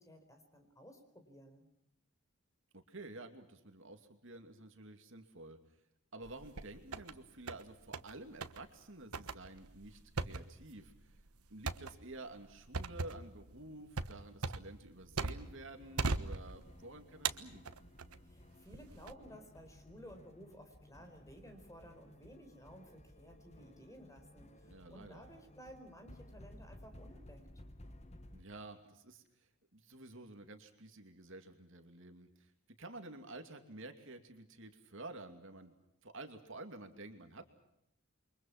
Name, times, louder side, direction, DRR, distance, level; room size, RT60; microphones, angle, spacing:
voice 1, 0.0-1.7 18.3-27.4, equal, 15° left, 5 dB, 4.7 m, -56 dB
voice 2, 2.7-5.6 6.1-11.2 11.5-17.6 24.6-25.2 28.3-32.5 32.8-35.7 36.0-37.5, right 2 dB, 60° right, 6 dB, 2.7 m, -51 dB
sound 1, 6.2-7.1 7.5-8.1 8.4-8.6 9.1-15.6 16.0-16.8 17.2-18.2 18.7-19.1, right 4 dB, 85° right, 1.3 m, -39 dB
sound 2, 15.3-28.4, left 1 dB, 30° left, 1.5 m, -57 dB
29.5 x 24.0 x 6.0 m, 0.80 s
head